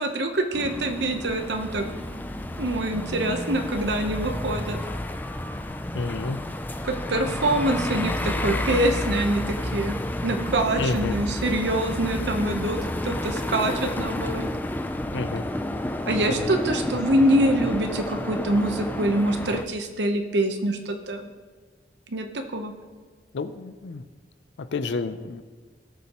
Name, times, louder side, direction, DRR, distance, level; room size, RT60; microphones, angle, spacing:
voice 1, 0.0-1.8 2.6-4.8 6.8-10.0 10.2-14.5 16.1-21.3 22.1-22.3 22.5-22.7, right 1 dB, 85° right, 5 dB, 0.9 m, -25 dB
sound 1, 0.5-19.7, left 1 dB, 10° left, 0.4 m, -30 dB
voice 2, 5.9-6.4 10.7-11.2 15.1-15.4 16.3-16.5 23.3-24.0 24.6-25.4, left 3 dB, 90° left, 11 dB, 0.5 m, -30 dB
18.0 x 7.0 x 3.0 m, 1.5 s
head